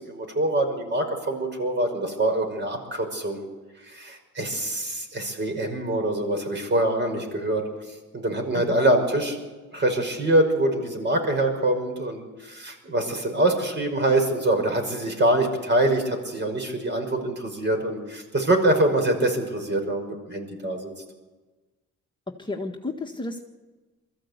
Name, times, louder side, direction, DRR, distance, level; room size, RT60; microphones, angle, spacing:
voice 1, 0.0-3.4 3.8-7.6 8.1-9.4 9.7-20.9, right 1 dB, 35° right, 4 dB, 5.4 m, -24 dB
voice 2, 22.4-23.4, left 2 dB, 15° left, 1 dB, 1.6 m, -32 dB
22.0 x 14.5 x 8.2 m, 1.3 s
cardioid pair, 90°, 30 cm